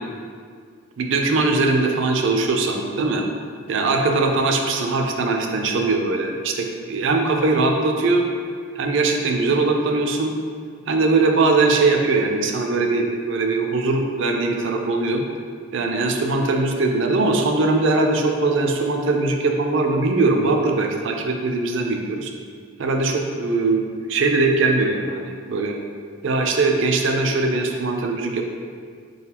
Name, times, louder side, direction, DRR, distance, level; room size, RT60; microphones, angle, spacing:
voice 1, 1.0-3.2 3.7-8.2 8.8-10.4 10.9-15.2 15.7-22.3 22.8-25.8 26.2-28.5, right 3 dB, 60° right, 3 dB, 0.4 m, -21 dB
4.0 x 3.9 x 2.9 m, 2.1 s
head